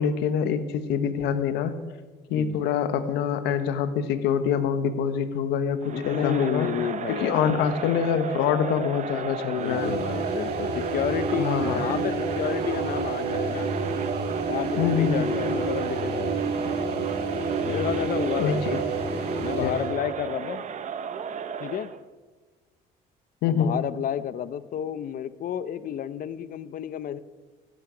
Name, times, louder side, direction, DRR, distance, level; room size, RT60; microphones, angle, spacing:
voice 1, 0.0-1.7 2.3-6.7 7.1-9.9 11.4-11.8 14.8-15.2 18.4-18.8 19.6-19.7 23.4-23.7, left 8 dB, 85° left, 11 dB, 1.1 m, -25 dB
Crowd, 5.8-22.0, right 7 dB, 45° right, 0.9 m, -34 dB
voice 2, 5.9-7.7 8.6-9.0 9.5-13.7 14.5-16.4 17.6-18.9 19.4-20.6 21.6-21.9 23.5-27.2, left 10 dB, 55° left, 15 dB, 0.7 m, -31 dB
sound 1, 9.5-19.9, right 3 dB, 75° right, 5.0 m, -29 dB
16.5 x 12.0 x 5.1 m, 1.3 s
cardioid pair, 110°, 17 cm